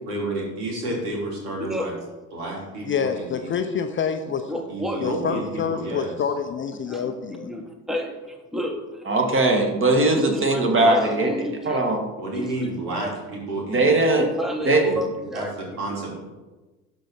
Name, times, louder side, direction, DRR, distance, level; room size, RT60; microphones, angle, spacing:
voice 1, 0.0-1.9 2.3-3.5 4.5-6.2 12.2-13.9 14.8-15.0 15.3-15.5 15.8-16.2, right 2 dB, 75° right, -2 dB, 2.9 m, -30 dB
voice 2, 1.6-1.9 4.5-5.0 6.9-7.1 7.4-9.1 10.2-11.8 12.3-13.1 14.2-15.5, left 1 dB, ahead, 3 dB, 1.1 m, -31 dB
voice 3, 2.8-4.5 5.0-7.5, left 7 dB, 25° left, 7 dB, 0.6 m, -27 dB
voice 4, 9.1-11.3 11.7-12.0 13.7-14.3 14.7-14.8, right 2 dB, 25° right, 3 dB, 1.9 m, -19 dB
12.0 x 4.2 x 4.7 m, 1.2 s
hypercardioid pair, 70°, 46 cm